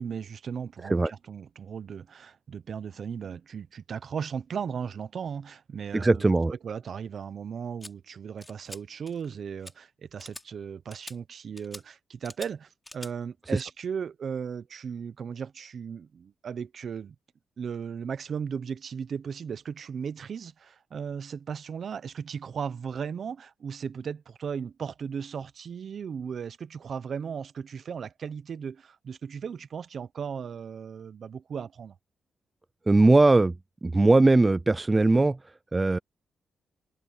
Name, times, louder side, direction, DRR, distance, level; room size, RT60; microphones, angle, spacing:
voice 1, 0.0-6.3 6.6-17.1 17.6-32.0 35.1-35.2, right 7 dB, 60° right, 0.9 m, -36 dB
voice 2, 5.9-6.5 13.5-13.6 32.9-33.6 33.8-36.0, right 2 dB, 20° right, 0.4 m, -20 dB
sound 1, 7.8-7.9 8.4-8.8 9.1-9.3 9.6-9.7 10.2-10.4 10.9-11.2 11.6-11.8 12.2-12.5 12.8-13.1, left 1 dB, 15° left, 3.6 m, -44 dB
cardioid pair, 100°, 0 cm